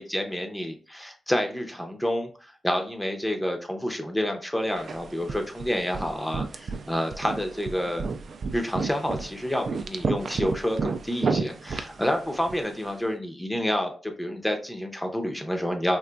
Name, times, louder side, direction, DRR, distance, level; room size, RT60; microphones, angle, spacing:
voice 1, 0.0-8.1 8.5-16.0, equal, 10° left, 4 dB, 0.5 m, -29 dB
sound 1, 4.8-12.9, right 4 dB, 60° right, 0.3 m, -32 dB
3.8 x 2.5 x 2.3 m, 0.38 s
wide cardioid pair, 100°, 0 cm